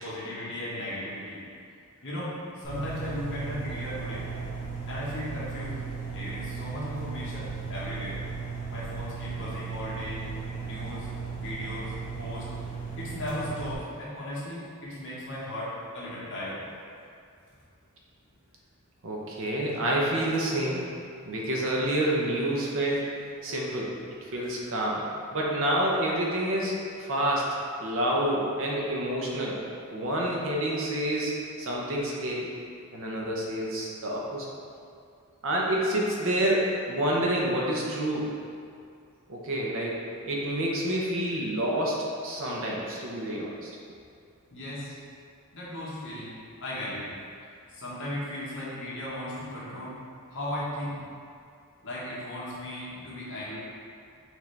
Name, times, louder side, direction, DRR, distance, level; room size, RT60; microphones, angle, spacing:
voice 1, 0.0-1.4 2.0-4.2 4.9-5.8 6.1-8.2 8.7-10.2 10.6-12.5 13.0-15.7 15.9-16.6 44.5-44.9 45.5-46.3 46.6-47.1 47.7-49.9 50.3-51.0 51.8-53.6, left 1 dB, 55° left, -8 dB, 1.2 m, -36 dB
sound 1, 2.6-13.7, right 5 dB, 35° left, 1.2 m, -36 dB
voice 2, 19.0-20.8 21.3-23.2 23.4-23.9 24.3-25.0 25.3-27.5 27.8-29.6 29.9-32.5 32.9-34.5 35.4-38.3 39.3-40.0 40.3-43.7, right 1 dB, 60° right, -3 dB, 0.8 m, -28 dB
5.9 x 2.7 x 3.3 m, 2.4 s
head